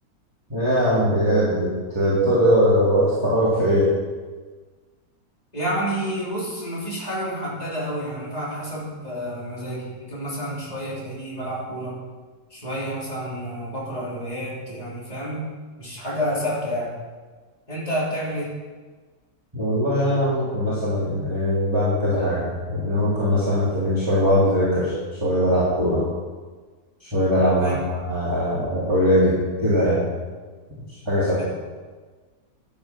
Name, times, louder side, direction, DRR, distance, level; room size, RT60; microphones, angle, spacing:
voice 1, 0.5-4.0 19.5-24.9 25.2-26.0 27.0-30.1 31.0-31.4, equal, 15° right, -10 dB, 3.3 m, -21 dB
voice 2, 5.5-12.0 12.5-15.5 15.8-16.9 17.7-18.5 27.6-27.8 31.4-31.5, equal, 20° left, -6 dB, 3.6 m, -29 dB
12.5 x 8.8 x 6.0 m, 1.4 s
omnidirectional pair, 1.8 m